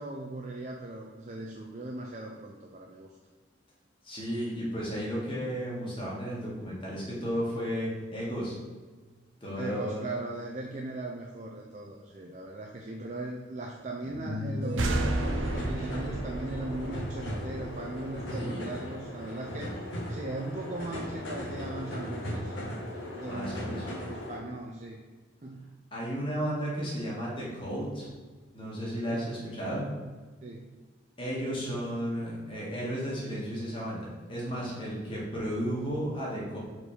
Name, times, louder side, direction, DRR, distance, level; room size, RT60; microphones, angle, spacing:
voice 1, 0.0-3.2 9.5-19.7 20.1-22.6 23.1-25.0 25.4-25.8 29.1-29.3 30.4-30.8, right 2 dB, 35° right, 0 dB, 0.4 m, -39 dB
voice 2, 4.0-8.6 9.4-10.0 18.3-18.7 23.2-23.8 25.9-28.1 28.5-29.9 31.2-36.6, equal, 25° left, -6 dB, 1.9 m, -33 dB
sound 1, 12.9-13.0 14.0-19.3, equal, 60° right, 1.5 m, -39 dB
sound 2, 14.8-18.3, right 2 dB, 90° right, 0.7 m, -33 dB
sound 3, 14.9-24.4, equal, 80° left, 1.4 m, -38 dB
4.6 x 4.6 x 5.0 m, 1.4 s
head